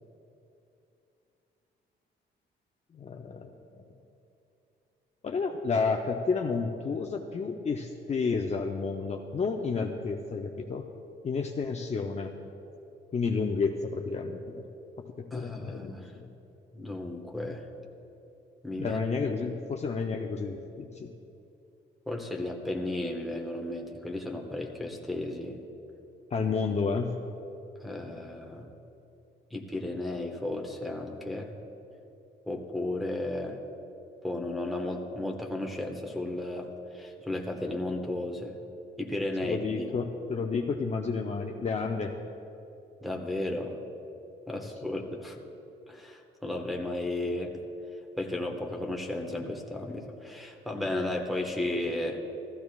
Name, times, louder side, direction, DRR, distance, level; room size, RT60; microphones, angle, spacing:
voice 1, 2.9-3.8 5.2-10.9 11.2-12.3 13.1-14.6 15.2-16.3 18.8-21.1 26.3-27.1 39.5-42.1 44.5-44.6, left 4 dB, 35° left, 1 dB, 0.7 m, -31 dB
voice 2, 15.3-16.1 16.7-17.7 18.6-19.0 22.1-25.6 27.8-28.7 29.5-31.5 32.5-33.6 34.2-38.6 39.0-39.9 43.0-43.8 44.5-45.4 45.9-47.6 48.2-52.2, left 1 dB, ahead, 0 dB, 1.3 m, -34 dB
15.0 x 14.0 x 2.4 m, 2.8 s
cardioid pair, 90°, 20 cm